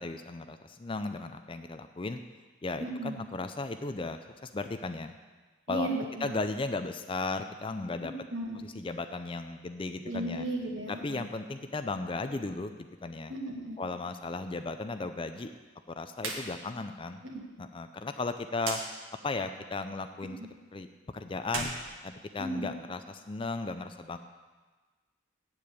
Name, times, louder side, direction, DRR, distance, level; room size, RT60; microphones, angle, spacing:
voice 1, 0.0-2.2 2.6-5.1 5.7-5.9 6.2-8.1 8.8-10.5 10.9-13.3 13.8-15.5 16.0-17.2 17.6-18.8 19.2-20.4 20.7-21.7 22.0-24.2, left 3 dB, 25° left, 8 dB, 0.4 m, -35 dB
voice 2, 2.8-3.2 5.7-6.4 8.0-8.7 10.0-11.2 13.3-13.8 17.2-17.4 20.4-20.5 22.4-22.7, right 1 dB, 55° right, 1 dB, 1.8 m, -35 dB
sound 1, 16.2-16.5 16.8-16.9 18.6-18.8 21.4-22.7, right 4 dB, 80° right, 1.6 m, -36 dB
8.8 x 7.7 x 8.3 m, 1.3 s
head